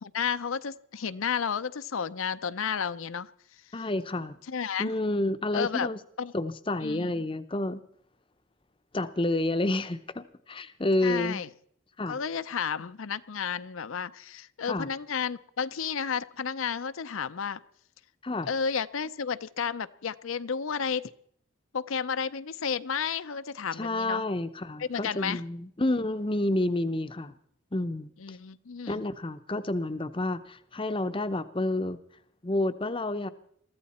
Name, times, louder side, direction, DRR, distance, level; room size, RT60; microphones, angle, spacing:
voice 1, 0.0-3.3 3.8-3.9 4.5-4.9 5.5-5.9 6.2-6.3 6.8-7.1 11.0-11.5 12.1-17.6 18.5-21.1 21.7-24.2 24.8-25.4 28.2-29.0, left 6 dB, 75° left, 13 dB, 0.6 m, -32 dB
voice 2, 3.7-4.4 4.8-6.0 6.3-7.8 8.9-11.4 12.0-12.2 14.7-14.9 18.2-18.5 23.8-27.3 27.7-28.4 28.9-32.0 32.4-33.3, left 2 dB, 25° left, 12 dB, 0.6 m, -29 dB
22.5 x 14.5 x 4.2 m, 0.66 s
head